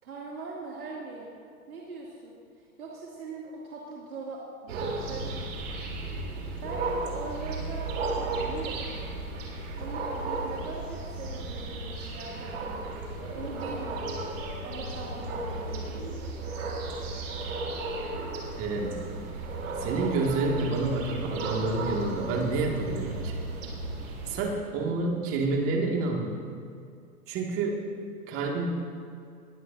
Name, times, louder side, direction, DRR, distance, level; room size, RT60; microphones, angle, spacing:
voice 1, 0.0-1.3 1.7-5.6 6.6-9.3 9.8-12.9 13.3-14.3 14.6-16.1, right 3 dB, 75° right, -4 dB, 2.8 m, -41 dB
sound 1, 4.7-24.5, right 2 dB, 55° right, 3.8 m, -34 dB
voice 2, 18.6-19.0 19.8-23.4 24.3-26.4 27.3-27.8 28.3-28.7, right 3 dB, 30° right, 0 dB, 2.3 m, -28 dB
21.5 x 15.5 x 2.8 m, 2.4 s
hypercardioid pair, 125°, 44 cm